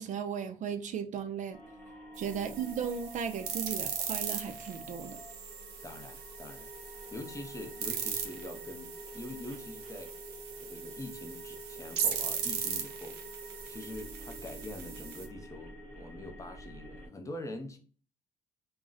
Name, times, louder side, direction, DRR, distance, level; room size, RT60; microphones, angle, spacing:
voice 1, 0.0-1.6 2.2-5.2, right 7 dB, 45° right, 0.4 m, -36 dB
sound 1, 1.5-17.1, equal, 25° right, 1.0 m, -48 dB
sound 2, 2.2-15.3, right 7 dB, 85° right, 0.6 m, -39 dB
voice 2, 5.8-6.7 7.1-10.1 10.6-17.8, left 2 dB, 20° left, 0.5 m, -44 dB
2.5 x 2.0 x 3.7 m
cardioid pair, 110°, 17 cm